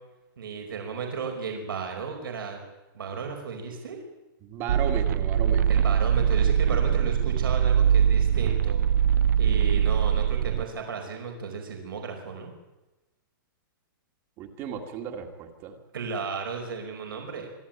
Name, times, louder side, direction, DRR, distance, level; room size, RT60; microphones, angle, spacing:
voice 1, 0.4-2.6 2.9-4.0 5.7-8.8 9.4-12.5 15.9-17.5, right 5 dB, 90° right, 3 dB, 5.1 m, -34 dB
voice 2, 4.4-5.8 14.4-15.8, right 7 dB, 25° right, 4 dB, 2.0 m, -35 dB
sound 1, 4.7-10.6, right 9 dB, 55° right, 0.6 m, -22 dB
25.5 x 12.0 x 9.0 m, 1.0 s
hypercardioid pair, 170°, 11 cm